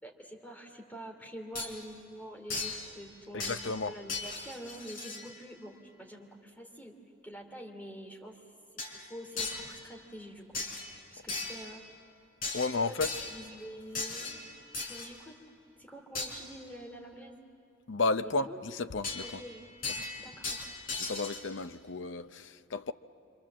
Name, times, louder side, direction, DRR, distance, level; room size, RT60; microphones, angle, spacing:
voice 1, 0.0-3.5 3.9-6.9 7.2-8.4 8.7-11.8 12.9-14.4 14.8-15.3 15.8-17.4 18.2-18.6 19.2-19.6 20.2-20.8, equal, 10° left, 2.8 m, -46 dB
sound 1, 1.5-1.7 2.5-2.9 3.4-3.8 4.1-5.3 8.8-9.0 9.4-9.7 10.5-10.9 11.3-11.7 12.4-13.4 13.9-15.1 16.1-16.3 19.0-19.5 19.8-21.4, left 3 dB, 45° left, 4.1 m, -37 dB
voice 2, 3.3-3.9 12.5-13.1 17.9-19.4 20.0-20.1 21.0-22.9, left 3 dB, 65° left, 0.7 m, -33 dB
26.5 x 26.5 x 7.5 m
head